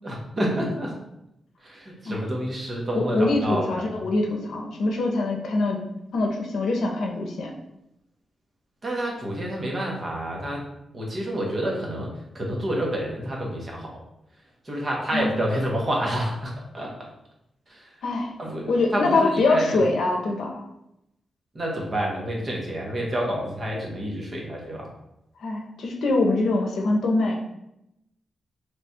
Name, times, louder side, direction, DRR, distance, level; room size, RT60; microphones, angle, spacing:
voice 1, 0.0-0.9 1.6-3.8 8.8-10.6 10.9-14.0 14.6-17.1 17.7-17.9 18.4-19.8 21.5-24.9, equal, 30° right, -2 dB, 0.9 m, -29 dB
voice 2, 2.9-3.4 3.7-5.8 6.1-7.5 15.1-15.3 18.0-18.3 18.7-20.6 25.4-27.3, left 2 dB, 90° left, 1 dB, 0.6 m, -23 dB
3.1 x 2.3 x 4.1 m, 0.84 s
wide cardioid pair, 145°, 0 cm